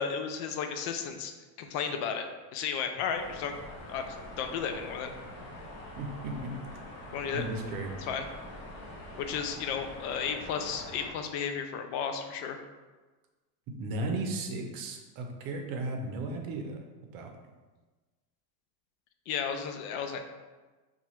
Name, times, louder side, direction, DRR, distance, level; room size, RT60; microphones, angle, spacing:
voice 1, 0.0-1.3 1.6-2.3 2.5-3.6 3.9-4.0 4.4-5.1 7.1-7.4 8.0-8.3 9.2-12.6 19.3-20.2, left 7 dB, 70° left, 6 dB, 0.6 m, -33 dB
sound 1, 3.1-11.1, left 1 dB, 35° left, 0.9 m, -45 dB
voice 2, 6.0-6.5 7.3-7.9 13.8-17.3, right 2 dB, 50° right, 3 dB, 0.7 m, -35 dB
2.9 x 2.4 x 4.2 m, 1.3 s
supercardioid pair, 120°, 46 cm